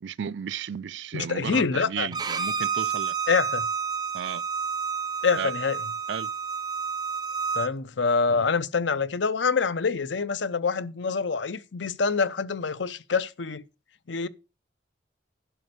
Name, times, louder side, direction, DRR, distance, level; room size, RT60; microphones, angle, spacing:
voice 1, 0.0-3.2 4.1-4.4 5.4-5.5 6.1-6.3, right 7 dB, 85° right, 0.4 m, -34 dB
voice 2, 1.1-2.1 3.3-3.7 5.2-5.8 7.5-13.7 14.1-14.3, left 5 dB, 85° left, 0.7 m, -26 dB
Bowed string instrument, 2.1-7.7, right 6 dB, 20° right, 0.8 m, -30 dB
11.0 x 5.3 x 6.7 m
head